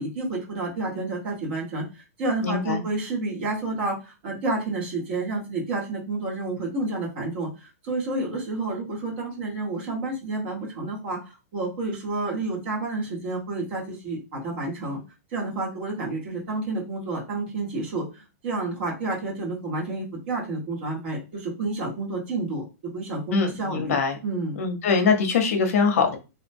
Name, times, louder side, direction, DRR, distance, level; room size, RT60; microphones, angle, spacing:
voice 1, 0.0-15.0 15.3-24.6, right 2 dB, 40° right, -2 dB, 1.1 m, -30 dB
voice 2, 2.4-2.8 23.3-24.2 24.6-26.2, left 5 dB, 55° left, 6 dB, 0.7 m, -23 dB
2.9 x 2.1 x 2.6 m, 0.29 s
supercardioid pair, 180°, 9 cm